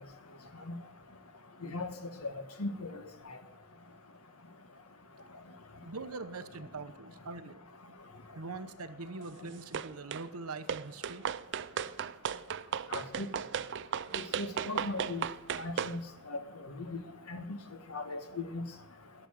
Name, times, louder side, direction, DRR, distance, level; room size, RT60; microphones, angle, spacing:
voice 1, 2.6-2.9 3.3-3.4 12.9-13.3 14.4-15.2 15.6-16.0 16.3-16.4 16.9-17.0 17.3-17.6 17.9-18.6, left 2 dB, 80° left, 1.6 m, -37 dB
voice 2, 5.8-7.6 8.4-11.2, right 3 dB, 80° right, 0.9 m, -43 dB
sound 1, 9.7-10.3 10.7-16.0, right 8 dB, 55° right, 0.4 m, -36 dB
12.0 x 7.2 x 8.9 m
head